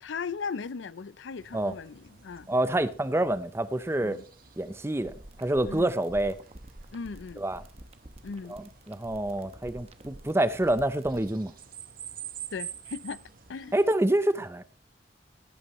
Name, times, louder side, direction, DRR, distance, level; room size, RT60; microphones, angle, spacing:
voice 1, 0.0-2.5 4.0-4.2 5.6-6.0 6.9-7.4 8.2-8.6 12.5-13.2 13.5-13.8, left 5 dB, 80° left, 0.5 m, -37 dB
sound 1, 1.4-13.9, right 9 dB, 50° right, 1.2 m, -48 dB
voice 2, 2.5-4.2 4.6-5.1 5.4-6.4 7.4-7.6 8.5-8.6 8.9-11.5 13.7-14.6, right 1 dB, 15° right, 0.6 m, -27 dB
sound 2, 4.9-11.3, right 1 dB, 35° right, 1.0 m, -47 dB
17.5 x 9.0 x 3.1 m
head